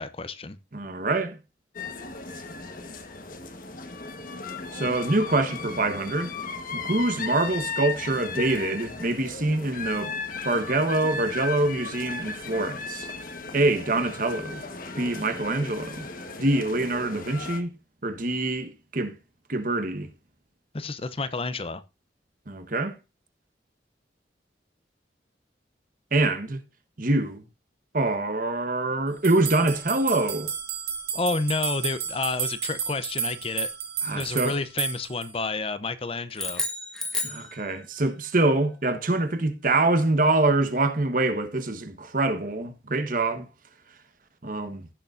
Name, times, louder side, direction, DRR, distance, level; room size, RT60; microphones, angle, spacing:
voice 1, 0.0-0.6 20.7-21.8 31.1-33.7 34.1-36.6, left 3 dB, 30° left, 0.6 m, -30 dB
voice 2, 0.7-1.4 4.7-6.3 6.7-10.1 10.4-13.1 13.5-14.6 15.0-16.1 16.4-17.7 18.0-19.1 19.5-20.1 22.5-23.0 26.1-26.6 27.0-27.4 27.9-30.5 34.0-34.6 37.2-43.5 44.4-44.8, right 2 dB, 50° right, 1.2 m, -25 dB
sound 1, 1.7-17.6, left 4 dB, 50° left, 1.4 m, -36 dB
sound 2, 29.2-35.3, right 6 dB, 65° right, 2.4 m, -32 dB
sound 3, 36.3-38.1, left 2 dB, 5° left, 1.3 m, -32 dB
16.0 x 6.7 x 2.6 m
head